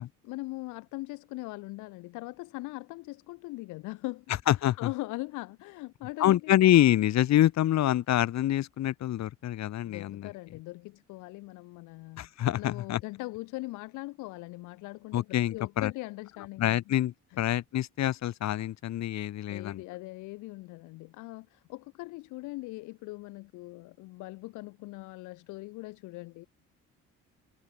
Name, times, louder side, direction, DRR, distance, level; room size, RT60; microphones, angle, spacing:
voice 1, 0.2-4.2 4.8-6.6 9.8-12.3 12.6-16.9 19.5-26.5, left 22 dB, 90° left, 4.0 m, -40 dB
voice 2, 4.5-4.9 6.2-10.3 12.2-13.0 15.1-15.9 16.6-19.8, left 12 dB, 65° left, 5.1 m, -26 dB
cardioid pair, 100°, 29 cm